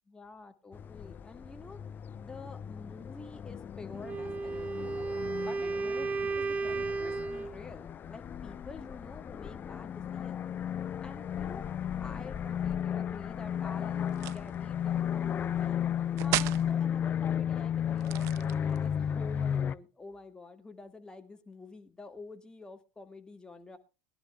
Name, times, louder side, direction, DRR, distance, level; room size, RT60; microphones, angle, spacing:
voice 1, 0.1-1.8 2.2-4.9 5.5-10.4 11.0-11.6 12.0-14.1 14.3-15.8 16.2-23.8, left 3 dB, 15° left, 6 dB, 1.9 m, -48 dB
sound 1, 0.7-19.7, left 9 dB, 35° left, 0.5 m, -34 dB
Wind instrument woodwind instrument, 4.0-7.5, right 4 dB, 25° right, 1.0 m, -33 dB
sound 2, 14.1-14.5 16.2-16.7 18.0-18.9, right 16 dB, 55° right, 0.5 m, -33 dB
21.0 x 12.0 x 2.3 m, 0.32 s
figure-of-eight pair, 70°, 6 cm